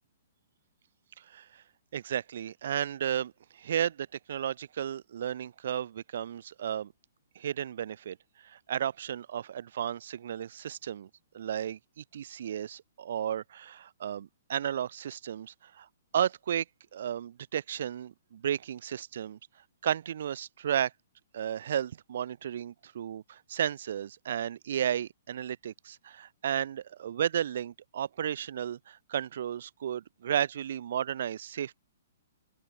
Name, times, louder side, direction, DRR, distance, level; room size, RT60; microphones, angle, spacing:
voice 1, 1.2-1.6 1.9-6.9 7.4-8.2 8.4-11.1 11.3-15.9 16.1-16.6 16.9-19.4 19.8-20.9 21.3-31.8, right 9 dB, 60° right, 2.6 m, -33 dB
open air
hypercardioid pair, 155°, 0 cm